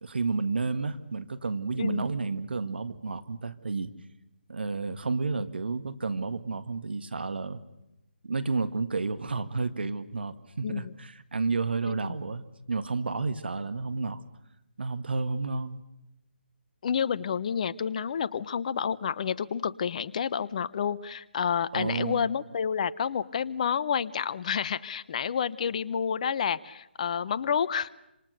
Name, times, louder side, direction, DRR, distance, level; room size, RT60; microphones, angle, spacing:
voice 1, 0.0-3.9 4.5-7.6 8.2-14.2 14.8-15.8 21.7-22.3, right 4 dB, 65° right, 1.7 m, -31 dB
voice 2, 16.8-27.9, left 7 dB, 40° left, 0.9 m, -29 dB
26.5 x 26.5 x 6.7 m
figure-of-eight pair, 150°, 6 cm